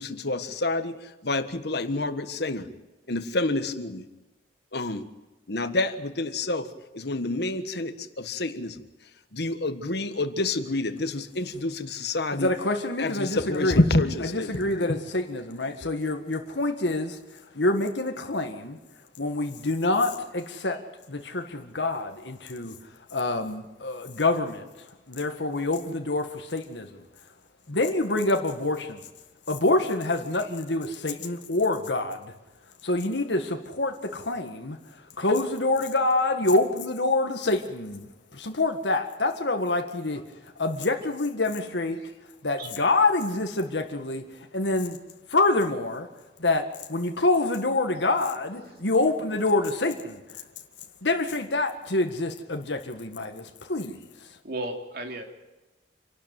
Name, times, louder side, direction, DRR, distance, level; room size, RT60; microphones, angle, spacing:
voice 1, 0.0-2.7 3.1-4.1 4.7-5.1 5.5-8.8 9.3-12.5 13.0-15.0 15.5-15.9, left 2 dB, 65° left, 10 dB, 1.5 m, -28 dB
voice 2, 12.3-13.8 14.3-18.8 19.2-22.8 23.1-27.1 27.7-29.0 29.5-32.3 32.8-40.2 40.6-42.1 42.4-45.0 45.3-46.1 46.4-50.4 51.0-54.3, left 2 dB, 85° left, 4 dB, 1.9 m, -27 dB
voice 3, 54.4-55.2, right 2 dB, 60° right, 4 dB, 3.2 m, -34 dB
27.5 x 12.0 x 9.3 m, 1.1 s
head